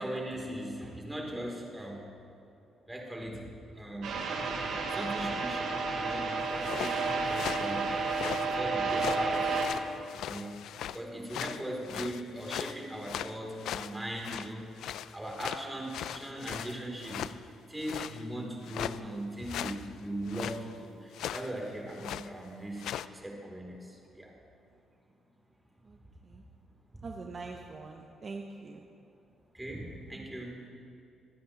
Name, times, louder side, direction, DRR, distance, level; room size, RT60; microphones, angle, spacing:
voice 1, 0.0-2.1 2.9-3.5 3.7-4.2 4.8-7.9 8.4-9.7 10.3-17.3 17.7-24.4 26.9-27.0 29.5-30.7, right 1 dB, 10° right, -1 dB, 2.8 m, -39 dB
sound 1, 4.0-9.7, right 4 dB, 80° right, 2.0 m, -31 dB
sound 2, 6.4-8.5 8.9-11.0 11.3-14.5 14.8-17.4 17.8-18.2 18.6-19.0 19.4-19.9 20.3-20.6 21.1-21.5 21.9-22.3 22.8-23.1, left 11 dB, 80° left, 0.3 m, -39 dB
voice 2, 27.0-28.9, right 3 dB, 40° right, 2 dB, 0.8 m, -43 dB
26.0 x 9.5 x 2.9 m, 2.7 s
cardioid pair, 90°, 0 cm